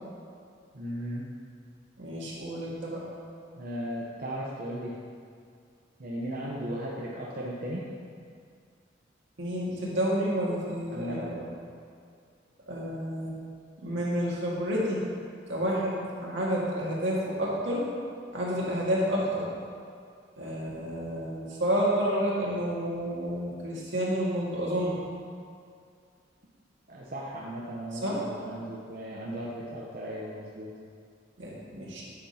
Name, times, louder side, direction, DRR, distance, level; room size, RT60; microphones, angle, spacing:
voice 1, 0.7-1.2 3.6-4.9 6.0-7.9 10.9-11.3 26.9-30.7, equal, 50° right, -5 dB, 0.8 m, -36 dB
voice 2, 2.0-3.0 9.4-11.4 12.7-13.3 13.8-15.0 15.5-17.9 18.3-19.5 20.4-25.0 27.9-28.2 31.4-32.0, equal, 80° right, -6 dB, 1.8 m, -30 dB
10.0 x 6.0 x 2.8 m, 2.3 s
head